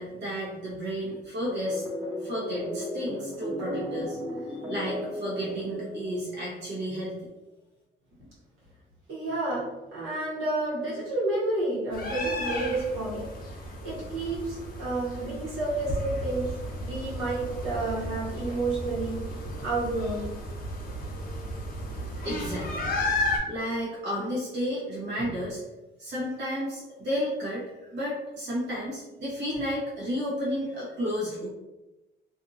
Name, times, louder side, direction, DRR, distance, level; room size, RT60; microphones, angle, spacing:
voice 1, 0.0-1.8 2.2-4.2 4.4-7.2 22.2-23.0 23.5-25.6 26.0-27.6 27.9-31.5, equal, 60° right, -6 dB, 1.1 m, -32 dB
sound 1, 1.5-6.7, equal, 20° right, 1.1 m, -35 dB
voice 2, 9.1-9.6 9.9-13.2 13.6-16.5 16.8-19.2 19.6-20.3 22.2-22.3 25.2-25.3, right 2 dB, 85° right, -8 dB, 1.3 m, -30 dB
sound 2, 11.9-23.4, left 1 dB, 45° left, 0.7 m, -34 dB
2.6 x 2.6 x 2.5 m, 1.0 s
cardioid pair, 90°, 20 cm